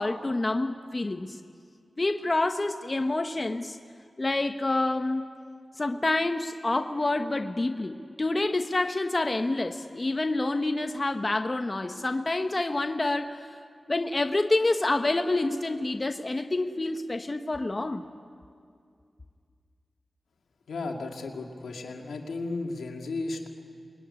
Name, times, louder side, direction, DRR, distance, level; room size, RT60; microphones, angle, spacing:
voice 1, 0.0-1.4 2.0-3.8 4.2-5.2 5.8-13.5 13.9-18.0, left 2 dB, 40° left, 7 dB, 1.2 m, -27 dB
voice 2, 20.7-23.5, left 3 dB, 90° left, 2 dB, 2.5 m, -34 dB
27.5 x 22.0 x 9.8 m, 2.3 s
cardioid pair, 40°, 0 cm